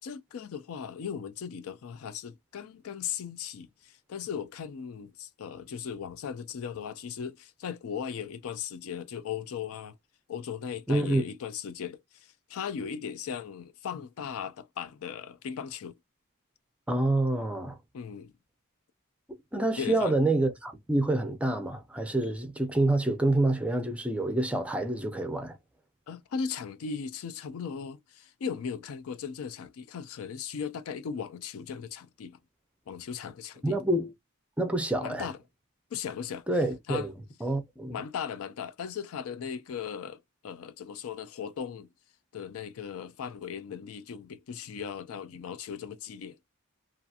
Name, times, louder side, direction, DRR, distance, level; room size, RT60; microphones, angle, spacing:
voice 1, 0.0-9.9 10.3-15.9 17.9-18.3 19.8-20.2 26.1-32.4 32.9-33.8 35.0-35.4 35.9-36.5 36.9-37.1 37.9-41.9 42.3-46.4, left 7 dB, 65° left, 0.4 m, -37 dB
voice 2, 10.9-11.3 16.9-17.8 19.5-25.6 33.6-34.1 34.6-35.3 36.5-37.1 37.4-38.0, right 2 dB, 5° right, 0.5 m, -27 dB
2.7 x 2.4 x 2.3 m
head